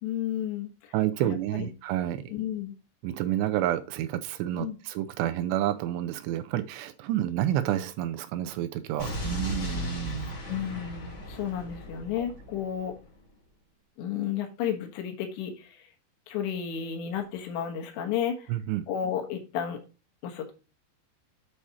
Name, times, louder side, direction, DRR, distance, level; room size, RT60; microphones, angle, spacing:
voice 1, 0.0-1.7 2.3-2.7 4.5-4.8 9.5-9.6 10.5-12.9 14.0-15.9 16.3-18.5 18.9-19.8 20.2-20.5, left 9 dB, 80° left, 4 dB, 3.5 m, -32 dB
voice 2, 0.9-2.2 3.0-10.3 12.2-12.3 18.5-18.8, right 12 dB, 80° right, 9 dB, 2.7 m, -29 dB
Explosion, 9.0-13.0, left 1 dB, 30° left, 3.1 m, -36 dB
8.7 x 4.2 x 4.8 m, 0.32 s
omnidirectional pair, 5.1 m